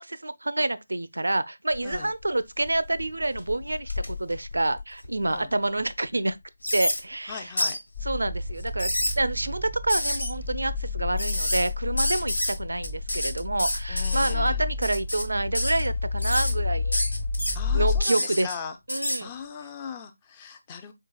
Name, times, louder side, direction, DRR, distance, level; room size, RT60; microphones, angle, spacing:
voice 1, 0.0-6.4 6.7-7.5 8.0-8.9 9.2-17.0 17.7-18.5 18.9-19.3, right 2 dB, 70° right, 0.4 m, -28 dB
sound 1, 1.7-2.2 2.7-5.3 5.8-5.9 6.6-7.0 7.6-7.8 8.6-9.1 9.9-10.3 11.2-11.7 12.0-12.5 12.8-14.3 14.8-15.2 15.5-15.9 16.2-16.5 16.9-17.6 18.0-18.5 18.9-19.2, left 1 dB, 75° left, 1.3 m, -28 dB
voice 2, 7.3-7.8 12.1-12.2 13.9-14.6 17.5-18.8 19.2-20.9, left 6 dB, 20° left, 0.5 m, -39 dB
sound 2, 7.9-18.0, left 4 dB, 45° left, 1.2 m, -30 dB
4.5 x 3.8 x 2.3 m
figure-of-eight pair, 155°, 0 cm